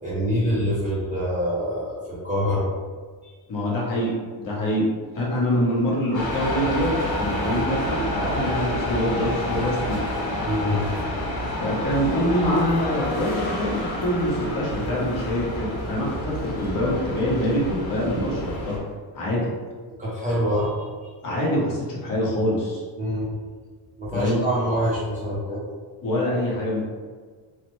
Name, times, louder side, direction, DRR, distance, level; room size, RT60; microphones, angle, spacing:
voice 1, 0.0-2.7 3.2-3.3 10.4-10.9 19.9-21.1 23.0-23.3 24.0-25.6, equal, 15° right, -9 dB, 0.5 m, -25 dB
voice 2, 3.5-4.9 5.1-6.9 7.2-10.1 11.6-18.8 19.1-19.5 21.2-22.8 24.1-24.4 26.0-26.9, equal, 45° left, -5 dB, 0.9 m, -25 dB
sound 1, 6.1-18.8, left 1 dB, 75° left, 1.0 m, -29 dB
3.2 x 2.0 x 3.0 m, 1.5 s
cardioid pair, 165°, 47 cm